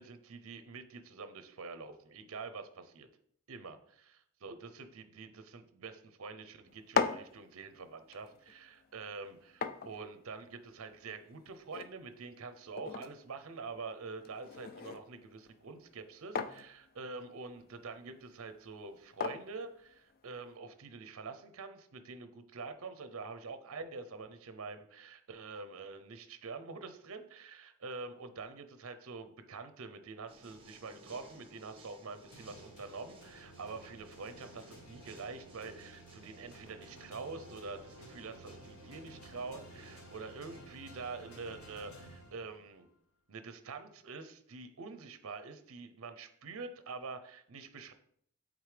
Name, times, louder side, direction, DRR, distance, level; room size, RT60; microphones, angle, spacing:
voice 1, 0.0-3.1 3.5-3.8 4.4-42.9 43.3-47.9, right 4 dB, 65° right, 10 dB, 0.6 m, -46 dB
sound 1, 6.7-20.6, left 5 dB, 45° left, 0.4 m, -42 dB
sound 2, 30.3-40.6, right 1 dB, 25° right, 1.1 m, -58 dB
sound 3, 32.3-42.9, right 1 dB, 65° left, 1.2 m, -54 dB
8.2 x 3.7 x 3.3 m, 0.64 s
head